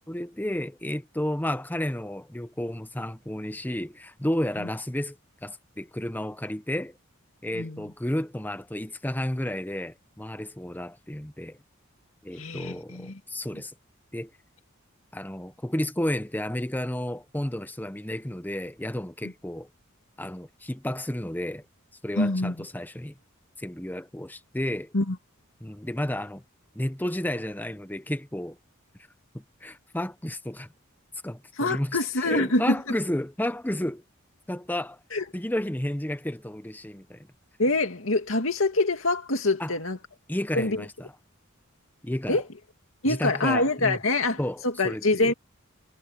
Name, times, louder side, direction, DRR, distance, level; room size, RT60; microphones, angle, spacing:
voice 1, 0.1-5.2 5.4-7.0 7.4-11.6 12.2-13.7 14.1-14.3 15.1-19.7 20.2-21.6 22.0-23.2 23.6-24.9 25.6-26.4 26.7-28.6 29.3-30.7 31.2-32.0 32.2-34.0 34.5-35.0 35.3-37.3 39.6-39.7 40.3-40.9 42.0-42.4 43.1-44.0 44.4-45.3, left 1 dB, 10° left, 0.9 m, -32 dB
voice 2, 7.5-7.9 12.4-13.2 19.2-19.3 22.2-22.7 24.9-25.2 31.6-32.8 35.1-35.2 37.6-40.0 40.5-40.8 42.3-42.5 43.0-45.3, left 2 dB, 70° left, 2.4 m, -25 dB
head